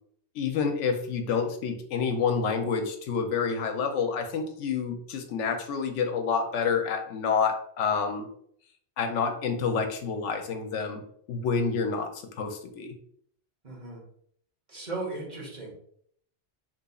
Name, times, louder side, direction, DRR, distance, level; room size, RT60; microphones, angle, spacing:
voice 1, 0.3-8.3 9.0-11.0 11.3-13.0, left 5 dB, 85° left, 6 dB, 0.9 m, -28 dB
voice 2, 13.6-14.0 14.7-15.7, right 3 dB, 40° right, -2 dB, 1.0 m, -36 dB
3.9 x 2.9 x 2.3 m, 0.65 s
omnidirectional pair, 1.2 m